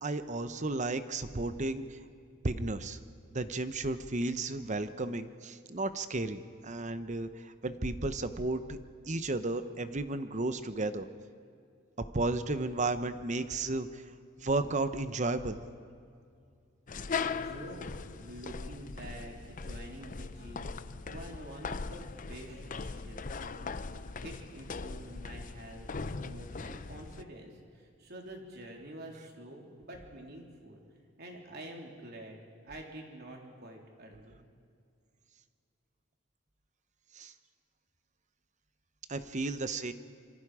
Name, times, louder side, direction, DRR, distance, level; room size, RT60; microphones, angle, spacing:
voice 1, 0.0-2.0 2.4-3.0 3.3-8.8 9.1-11.1 12.0-14.0 14.4-15.6 37.1-37.3 39.1-39.9, right 2 dB, 35° right, 11 dB, 0.9 m, -33 dB
sound 1, 16.9-27.2, left 4 dB, 40° left, 0.6 m, -40 dB
voice 2, 17.1-20.7 21.1-30.8 31.2-32.4 32.6-34.4, right 1 dB, 50° right, 1 dB, 3.5 m, -47 dB
26.5 x 24.0 x 5.0 m, 2.3 s
head